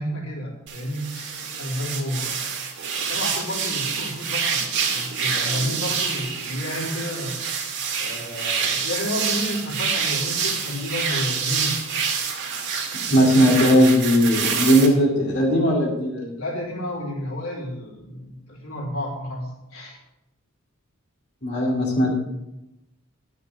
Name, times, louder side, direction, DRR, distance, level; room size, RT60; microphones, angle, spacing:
voice 1, 0.0-2.5 3.1-7.4 8.0-11.7 16.4-20.0, equal, 80° left, -2 dB, 3.5 m, -31 dB
sound 1, 0.7-14.9, right 6 dB, 55° right, 2.3 m, -27 dB
voice 2, 13.1-16.3 21.4-22.1, equal, 50° left, -5 dB, 2.5 m, -18 dB
12.0 x 6.6 x 6.9 m, 0.92 s
head